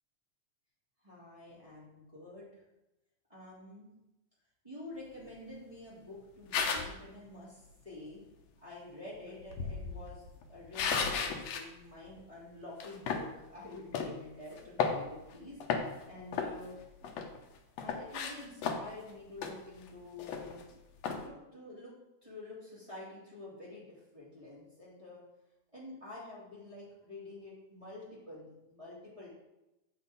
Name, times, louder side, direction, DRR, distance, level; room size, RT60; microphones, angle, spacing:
voice 1, 1.0-2.5 3.3-3.9 4.6-8.2 8.6-10.2 10.5-15.8 16.0-16.7 17.8-20.6 21.2-21.9 22.2-25.2 25.7-29.3, left 2 dB, 10° right, -8 dB, 2.7 m, -48 dB
sound 1, 6.5-7.0 9.4-11.7 12.1-12.2 12.8-13.3 13.9-14.1 14.6-15.3 15.6-16.0 16.3-17.4 17.8-19.0 19.4-19.6 19.9-20.0 20.2-20.6 21.0-21.2, left 6 dB, 70° left, 1.8 m, -34 dB
8.5 x 7.7 x 3.9 m, 0.94 s
omnidirectional pair, 3.5 m